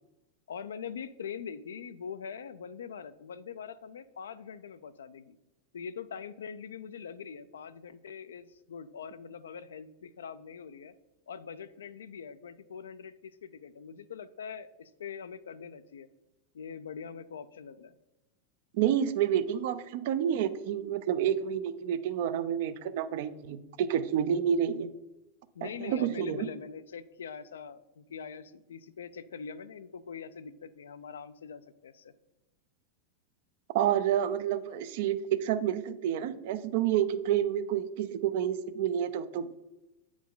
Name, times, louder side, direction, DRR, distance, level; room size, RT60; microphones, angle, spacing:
voice 1, 0.5-5.4 5.7-10.9 11.3-16.1 16.5-17.9 25.5-32.1, left 6 dB, 85° left, 13 dB, 0.4 m, -43 dB
voice 2, 18.7-24.9 25.6-26.5 33.7-39.5, right 9 dB, 65° right, 12 dB, 0.5 m, -29 dB
8.1 x 4.8 x 3.8 m, 1.0 s
hypercardioid pair, 115°, 0 cm